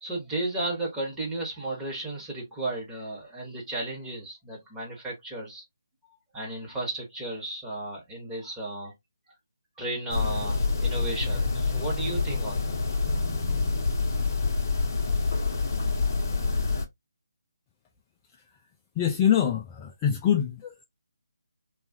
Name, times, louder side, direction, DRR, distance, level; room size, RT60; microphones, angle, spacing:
voice 1, 0.0-5.6 6.3-8.9 9.8-12.8, right 2 dB, 10° right, 1.1 m, -34 dB
sound 1, 10.1-16.8, left 4 dB, 40° left, 0.7 m, -27 dB
voice 2, 19.0-20.8, left 9 dB, 20° left, 0.3 m, -24 dB
3.0 x 2.3 x 2.6 m
figure-of-eight pair, 155°, 2 cm